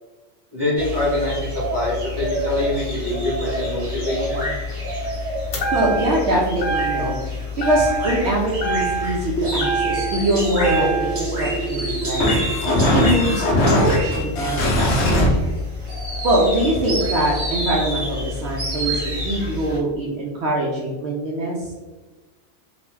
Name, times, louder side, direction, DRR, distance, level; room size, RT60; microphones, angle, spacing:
voice 1, 0.5-4.4, left 1 dB, 20° right, -8 dB, 1.3 m, -25 dB
sound 1, 0.8-19.8, left 1 dB, 80° right, 1.6 m, -28 dB
sound 2, 5.5-6.3 6.6-7.3 7.6-8.3 8.6-10.2 10.6-11.2, right 3 dB, 80° left, 1.1 m, -25 dB
voice 2, 5.7-12.3 12.7-15.5 16.2-21.7, right 1 dB, 65° right, -4 dB, 0.8 m, -23 dB
sound 3, 9.4-15.3, equal, 65° left, 0.8 m, -21 dB
2.9 x 2.1 x 3.1 m, 1.2 s
omnidirectional pair, 1.3 m